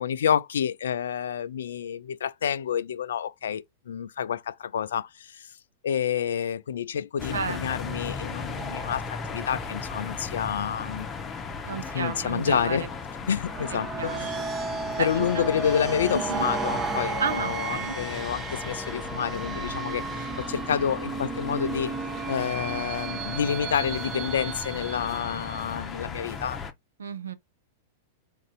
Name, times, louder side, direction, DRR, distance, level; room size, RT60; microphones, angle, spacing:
voice 1, 0.0-5.5 5.8-11.1 11.9-12.9 13.3-14.3 15.0-21.9 22.3-26.6, left 8 dB, 65° left, 0.4 m, -29 dB
sound 1, 7.2-26.7, left 4 dB, 20° left, 0.7 m, -37 dB
voice 2, 11.6-12.9 13.7-14.5 15.0-15.5 16.1-16.4 17.2-18.0 27.0-27.3, right 6 dB, 70° right, 0.6 m, -32 dB
sound 2, 13.4-25.9, right 5 dB, 20° right, 0.6 m, -34 dB
3.9 x 2.6 x 3.7 m
figure-of-eight pair, 95°, 0 cm